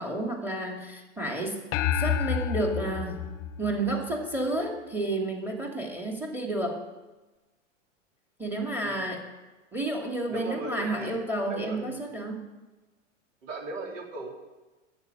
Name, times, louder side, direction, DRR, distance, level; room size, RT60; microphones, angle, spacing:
voice 1, 0.0-1.6 1.9-3.2 3.6-6.8 8.4-9.2 9.7-12.4, right 2 dB, 5° right, 2 dB, 2.5 m, -31 dB
sound 1, 1.7-4.4, left 9 dB, 35° left, 0.9 m, -29 dB
voice 2, 8.8-9.1 10.3-11.2 11.5-12.0 13.4-14.3, right 2 dB, 75° right, 0 dB, 4.0 m, -37 dB
11.0 x 7.9 x 9.3 m, 1.1 s
hypercardioid pair, 115°, 38 cm